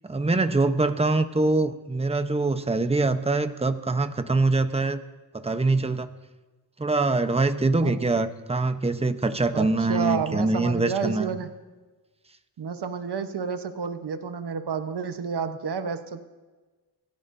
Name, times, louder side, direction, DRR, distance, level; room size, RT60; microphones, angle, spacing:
voice 1, 0.0-5.0 5.3-6.1 6.8-11.3, right 3 dB, 15° right, 9 dB, 0.9 m, -24 dB
voice 2, 9.5-11.5 12.6-16.2, right 6 dB, 75° right, 8 dB, 1.1 m, -30 dB
25.5 x 15.5 x 2.7 m, 1.2 s
wide cardioid pair, 95°, 41 cm